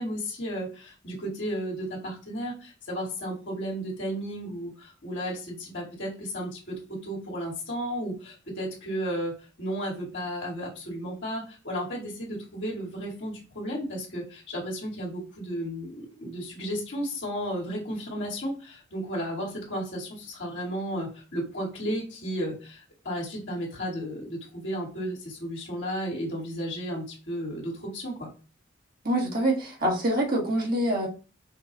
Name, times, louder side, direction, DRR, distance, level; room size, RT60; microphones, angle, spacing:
voice 1, 0.0-28.3, equal, 60° left, -3 dB, 1.8 m, -33 dB
voice 2, 29.0-31.1, right 1 dB, 45° right, -2 dB, 1.5 m, -25 dB
5.6 x 2.4 x 3.9 m, 0.35 s
head